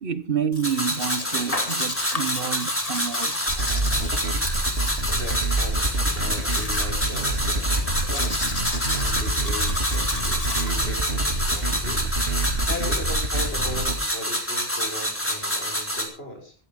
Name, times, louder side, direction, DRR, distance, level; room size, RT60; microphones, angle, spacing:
voice 1, 0.0-3.4, right 7 dB, 60° right, 1.2 m, -28 dB
Domestic sounds home sounds, 0.5-10.8, left 2 dB, 35° left, 2.1 m, -35 dB
sound 1, 0.6-16.0, equal, 10° left, 3.9 m, -27 dB
sound 2, 3.5-13.9, right 2 dB, 80° right, 3.3 m, -26 dB
voice 2, 5.0-8.3 8.9-12.1 12.6-16.5, left 1 dB, 70° left, 6.2 m, -38 dB
15.0 x 14.5 x 5.2 m
omnidirectional pair, 1.1 m